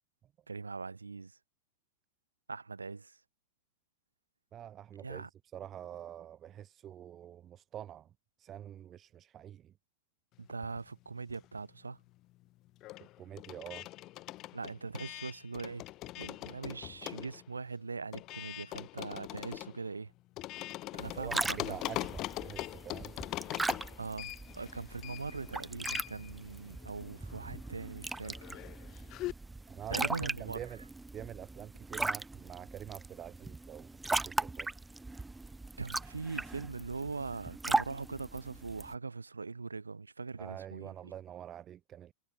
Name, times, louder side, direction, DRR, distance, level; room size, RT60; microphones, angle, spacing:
voice 1, 0.5-1.4 2.5-3.2 5.0-5.3 10.4-12.0 14.5-15.9 16.2-20.1 20.9-21.8 24.0-28.6 29.9-30.7 35.8-41.1, right 4 dB, 85° right, 2.6 m, -41 dB
voice 2, 4.5-5.2 5.5-8.1 8.4-9.7 13.0-13.9 21.2-21.3 21.7-23.1 29.7-30.8 31.1-34.7 40.4-42.1, right 10 dB, 30° right, 7.7 m, -46 dB
sound 1, 10.5-11.8 12.0-29.3, left 17 dB, 40° left, 1.0 m, -43 dB
sound 2, 21.0-38.9, right 2 dB, 10° right, 2.6 m, -39 dB
figure-of-eight pair, 95°, 0 cm